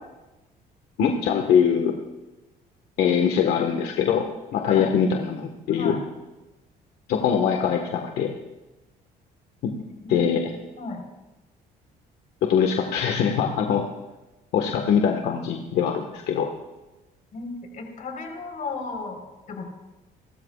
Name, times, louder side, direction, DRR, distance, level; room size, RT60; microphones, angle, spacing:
voice 1, 1.0-2.0 3.0-6.0 7.1-8.3 9.6-9.7 10.1-10.5 12.5-13.8 14.5-16.5, left 7 dB, 75° left, 3 dB, 1.6 m, -22 dB
voice 2, 10.0-11.0 17.3-19.7, left 4 dB, 50° left, 2 dB, 4.2 m, -34 dB
28.5 x 13.5 x 2.4 m, 1.1 s
cardioid pair, 110°, 17 cm